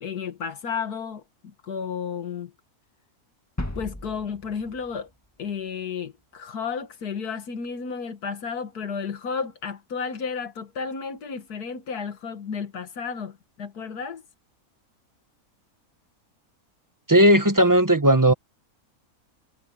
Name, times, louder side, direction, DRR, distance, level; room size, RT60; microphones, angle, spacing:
voice 1, 0.0-2.5 3.8-5.1 5.4-14.2, left 6 dB, 85° left, 1.9 m, -32 dB
sound 1, 3.6-5.6, left 1 dB, 10° left, 1.7 m, -36 dB
voice 2, 17.1-18.3, right 1 dB, 15° right, 1.0 m, -16 dB
omnidirectional pair, 1.6 m